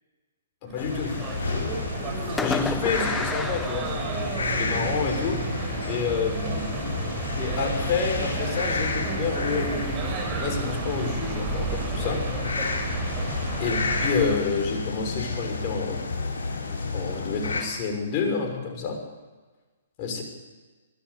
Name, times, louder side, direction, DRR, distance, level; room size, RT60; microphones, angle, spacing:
voice 1, 0.6-1.2 2.4-3.9 4.6-5.4 5.8-6.7 7.4-10.0 10.4-12.2 13.6-16.0 16.9-19.0 20.0-20.2, left 5 dB, 40° left, 3 dB, 6.1 m, -29 dB
sound 1, 0.7-14.4, right 5 dB, 30° right, 6.5 m, -33 dB
sound 2, 0.8-17.6, left 4 dB, 80° left, 6.7 m, -31 dB
Fireworks, 0.8-1.8 2.4-4.6, left 4 dB, 10° left, 1.1 m, -33 dB
23.0 x 14.0 x 8.6 m, 1.3 s
hypercardioid pair, 130°, 0 cm